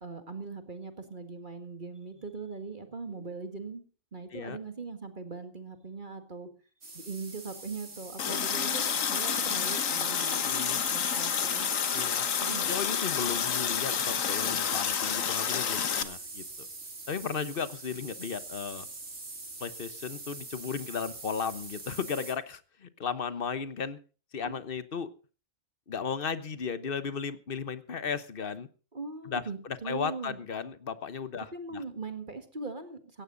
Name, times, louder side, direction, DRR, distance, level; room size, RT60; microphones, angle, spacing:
voice 1, 0.0-3.8 4.1-6.5 6.9-8.8 9.1-10.4 10.9-11.7 12.4-12.7 24.4-24.6 28.9-30.4 31.5-33.2, right 4 dB, 40° right, 8 dB, 1.9 m, -40 dB
sound 1, 6.8-22.3, right 3 dB, 65° right, 3.3 m, -44 dB
Water tap faucet, 8.2-16.0, left 7 dB, 75° left, 1.6 m, -29 dB
voice 2, 10.4-10.8 11.9-12.3 12.7-16.7 17.1-18.9 19.6-24.0 24.3-25.1 25.9-28.7 29.2-31.8, left 6 dB, 45° left, 14 dB, 1.2 m, -35 dB
17.0 x 15.0 x 3.9 m, 0.35 s
omnidirectional pair, 1.4 m